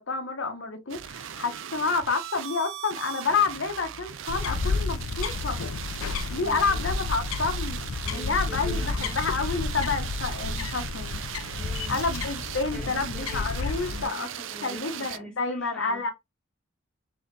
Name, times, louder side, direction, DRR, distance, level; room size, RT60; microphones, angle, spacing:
voice 1, 0.0-5.6 6.3-7.8 8.1-11.2 11.9-14.3 14.6-16.1, left 4 dB, 65° left, 0.9 m, -29 dB
sound 1, 0.9-15.2, right 10 dB, 70° right, 0.4 m, -38 dB
sound 2, 4.3-14.0, left 4 dB, 90° left, 0.5 m, -31 dB
voice 2, 6.3-6.8 8.0-9.6 11.5-12.0 12.7-13.5 13.9-16.1, equal, 5° left, 1.6 m, -44 dB
4.1 x 3.8 x 3.2 m
head